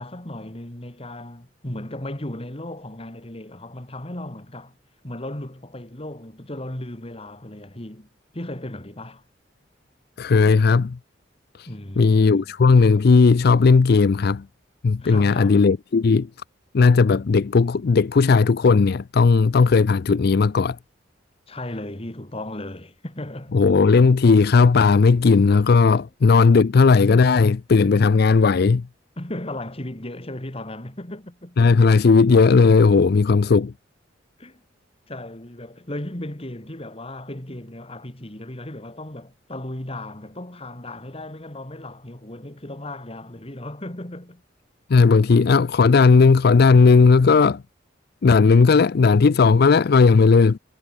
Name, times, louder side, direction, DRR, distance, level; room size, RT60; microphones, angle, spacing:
voice 1, 0.0-4.8 5.0-8.1 8.3-9.2 11.7-12.5 15.0-15.6 21.5-23.6 25.7-26.1 29.2-31.6 34.4-34.6 35.1-44.4, left 1 dB, 30° left, 2.5 m, -36 dB
voice 2, 10.2-11.0 11.6-11.7 12.0-14.5 14.8-16.3 16.7-20.8 23.5-28.9 31.6-33.7 44.9-47.6 48.2-50.6, left 4 dB, 55° left, 0.4 m, -16 dB
head